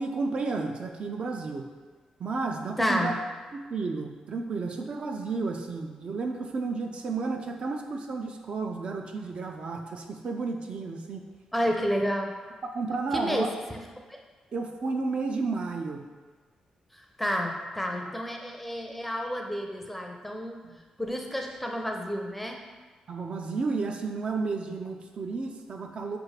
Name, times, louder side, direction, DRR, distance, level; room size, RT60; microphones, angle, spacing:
voice 1, 0.0-1.7 2.2-3.1 3.5-11.3 12.6-13.5 14.5-16.0 20.6-20.8 23.1-26.2, right 4 dB, 50° right, 3 dB, 0.4 m, -32 dB
voice 2, 2.8-3.2 11.5-12.3 13.1-13.5 14.1-14.2 16.9-20.6 21.0-22.6, equal, 5° left, 2 dB, 0.5 m, -30 dB
6.0 x 2.4 x 3.2 m, 1.4 s
cardioid pair, 110°, 2 cm